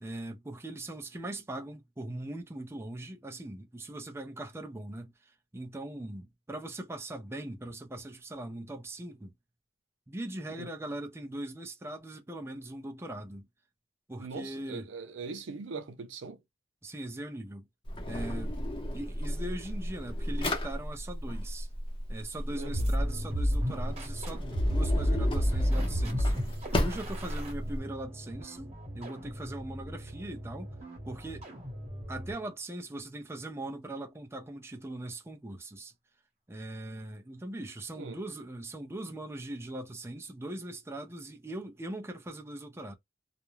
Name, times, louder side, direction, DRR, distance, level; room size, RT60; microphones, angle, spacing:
voice 1, 0.0-9.3 10.1-13.5 14.1-14.9 16.8-17.7 18.1-18.6 18.9-21.7 22.1-26.4 26.8-30.7 31.0-31.5 32.1-35.9 36.5-42.9, right 1 dB, 15° right, 0.4 m, -40 dB
voice 2, 14.2-16.4 22.5-22.9 37.9-38.2, right 4 dB, 90° right, 0.5 m, -41 dB
Drawer open or close, 17.9-27.8, left 1 dB, 30° left, 0.7 m, -35 dB
sound 1, 22.7-32.4, equal, 35° right, 1.0 m, -32 dB
2.4 x 2.1 x 3.0 m
head